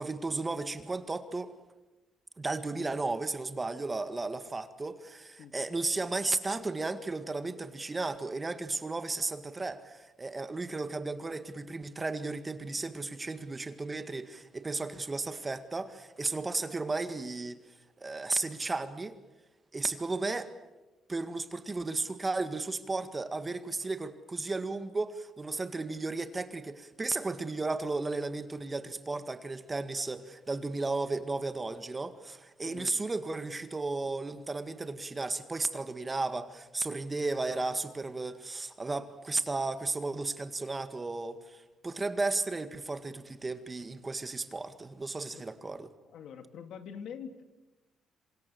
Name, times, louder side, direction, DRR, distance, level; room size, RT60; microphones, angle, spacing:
voice 1, 0.0-1.5 2.4-17.6 18.0-19.2 19.7-20.5 21.1-45.9, right 3 dB, 25° right, 10 dB, 1.8 m, -34 dB
voice 2, 46.1-47.4, left 7 dB, 75° left, 8 dB, 2.3 m, -44 dB
27.0 x 25.0 x 7.0 m, 1.1 s
cardioid pair, 90°, 0 cm